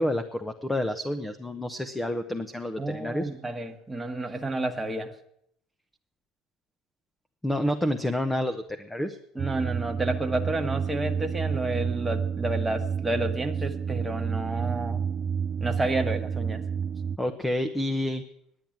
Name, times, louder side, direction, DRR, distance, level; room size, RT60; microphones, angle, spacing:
voice 1, 0.0-3.3 7.4-9.2 17.2-18.2, left 1 dB, 10° left, 7 dB, 0.9 m, -29 dB
voice 2, 2.8-5.1 9.3-15.0 15.6-16.6, right 2 dB, 15° right, 4 dB, 1.3 m, -30 dB
sound 1, 9.4-17.2, right 7 dB, 40° right, 0.5 m, -30 dB
10.5 x 9.3 x 9.0 m, 0.72 s
supercardioid pair, 90°, 0 cm